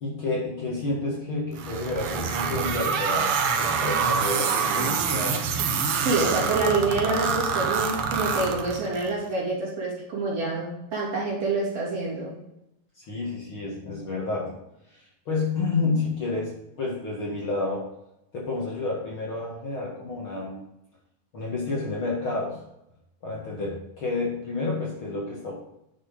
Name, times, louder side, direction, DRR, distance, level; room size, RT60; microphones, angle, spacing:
voice 1, 0.0-5.4 6.2-6.5 13.0-14.5 14.9-17.8 18.3-20.7 21.3-22.6 23.2-25.5, left 3 dB, 45° left, -4 dB, 2.3 m, -30 dB
sound 1, 1.6-9.1, right 5 dB, 85° right, 1.2 m, -26 dB
voice 2, 6.0-12.4, right 3 dB, 50° right, -5 dB, 4.0 m, -27 dB
10.5 x 6.6 x 5.4 m, 0.85 s
omnidirectional pair, 3.9 m